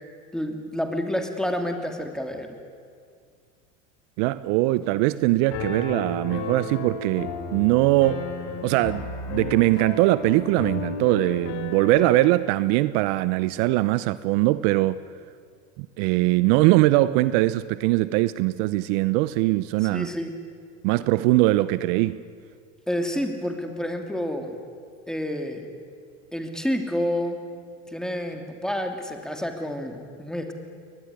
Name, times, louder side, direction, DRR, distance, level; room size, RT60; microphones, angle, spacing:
voice 1, 0.3-2.6 19.8-20.3 22.9-24.6 25.1-25.7 26.3-27.4 27.9-30.5, equal, ahead, 3.0 m, -29 dB
voice 2, 4.2-8.3 8.6-15.0 15.8-20.1 20.8-22.2, right 18 dB, 65° right, 0.8 m, -21 dB
Piano, 5.5-12.4, left 4 dB, 65° left, 3.9 m, -33 dB
22.0 x 20.0 x 9.8 m
supercardioid pair, 110°, 38 cm